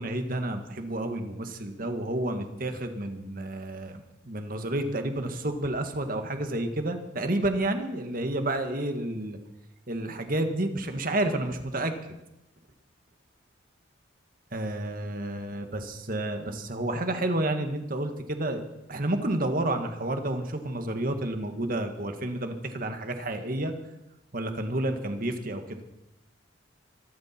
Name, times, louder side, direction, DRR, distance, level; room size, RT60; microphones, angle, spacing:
voice 1, 0.0-9.4 9.9-11.9 14.5-18.6 18.9-23.7 24.3-25.8, right 1 dB, 45° right, 6 dB, 1.7 m, -30 dB
24.5 x 12.5 x 4.5 m, 0.90 s
head